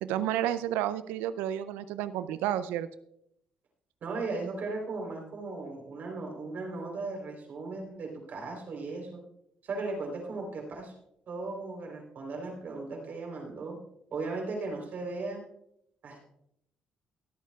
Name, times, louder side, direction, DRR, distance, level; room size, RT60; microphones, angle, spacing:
voice 1, 0.0-2.9, right 12 dB, 85° right, 13 dB, 0.5 m, -31 dB
voice 2, 4.0-9.2 9.6-10.9 11.3-13.8 14.1-15.4 16.0-16.2, right 3 dB, 60° right, 1 dB, 3.7 m, -37 dB
24.0 x 8.3 x 2.4 m, 0.75 s
supercardioid pair, 55°, 3 cm